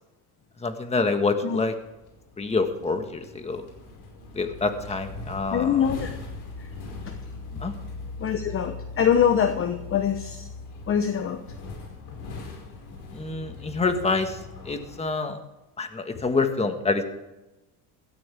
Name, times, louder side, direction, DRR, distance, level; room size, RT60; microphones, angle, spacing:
voice 1, 0.6-1.7 2.4-3.6 4.3-5.9 7.6-7.7 13.1-14.4 14.7-15.4 15.8-17.0, left 3 dB, 15° left, 7 dB, 1.6 m, -26 dB
sound 1, 1.8-15.0, left 3 dB, 60° left, 5.3 m, -40 dB
voice 2, 5.5-6.1 6.6-6.7 7.1-7.2 7.5-7.6 8.2-10.5 10.9-11.4, left 8 dB, 30° left, 8 dB, 1.0 m, -24 dB
16.5 x 14.0 x 3.5 m, 1.0 s
cardioid pair, 125°, 42 cm